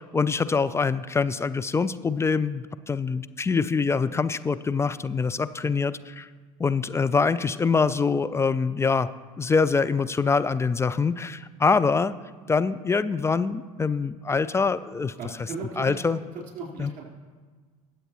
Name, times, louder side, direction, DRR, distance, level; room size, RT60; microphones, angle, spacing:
voice 1, 0.0-6.3 6.6-9.1 9.4-12.1 12.5-15.1 15.8-16.2 16.8-16.9, left 4 dB, 15° left, 13 dB, 0.3 m, -24 dB
voice 2, 15.2-17.1, right 4 dB, 45° right, -1 dB, 4.0 m, -37 dB
21.5 x 7.8 x 3.0 m, 1.5 s
hypercardioid pair, 75°, 20 cm